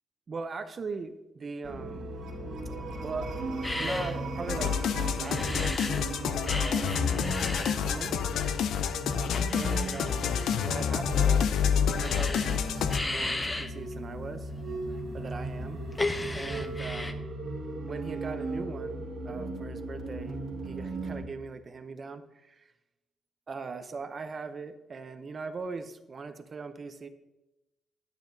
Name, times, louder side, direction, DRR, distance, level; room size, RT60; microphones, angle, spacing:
voice 1, 0.3-2.2 3.0-4.7 5.2-7.1 7.6-8.1 9.3-14.5 15.1-15.8 16.3-17.3 17.8-22.7 23.5-27.1, right 4 dB, 35° right, 10 dB, 0.6 m, -40 dB
sound 1, 1.6-21.2, right 1 dB, 70° right, 1.7 m, -37 dB
sound 2, 3.6-6.1 6.4-17.1, left 2 dB, 15° left, 0.5 m, -36 dB
sound 3, 4.5-13.0, left 7 dB, 75° left, 0.4 m, -28 dB
9.4 x 8.9 x 2.7 m, 1.0 s
cardioid pair, 120°, 0 cm